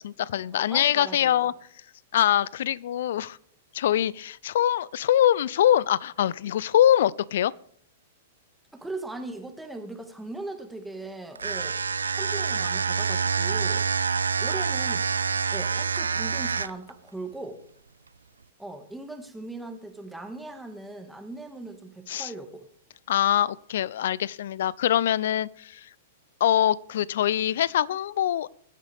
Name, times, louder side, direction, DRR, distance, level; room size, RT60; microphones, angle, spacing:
voice 1, 0.0-1.5 2.1-3.4 3.7-7.5 22.1-22.3 23.1-25.9 26.4-28.5, left 11 dB, 65° left, 23 dB, 0.4 m, -23 dB
voice 2, 0.5-1.5 8.7-11.8 12.1-13.9 14.4-15.1 15.5-17.6 18.6-22.7, right 2 dB, 5° right, 5 dB, 1.9 m, -39 dB
sound 1, 11.4-16.9, right 5 dB, 85° right, 0.4 m, -27 dB
22.0 x 9.9 x 3.5 m, 0.66 s
hypercardioid pair, 110°, 0 cm